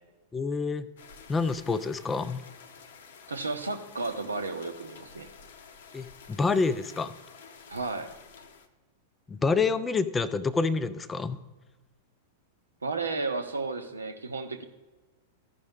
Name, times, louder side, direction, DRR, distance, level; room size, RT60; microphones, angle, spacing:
voice 1, 0.3-0.9 1.3-2.4 5.9-7.2 9.3-11.4, left 4 dB, 15° left, 14 dB, 0.4 m, -27 dB
sound 1, 1.0-8.7, left 6 dB, 60° left, 0.7 m, -51 dB
voice 2, 3.3-5.3 7.7-8.1 12.8-14.6, right 3 dB, 80° right, 7 dB, 0.8 m, -33 dB
14.5 x 5.3 x 3.5 m, 1.2 s
figure-of-eight pair, 95°, 0 cm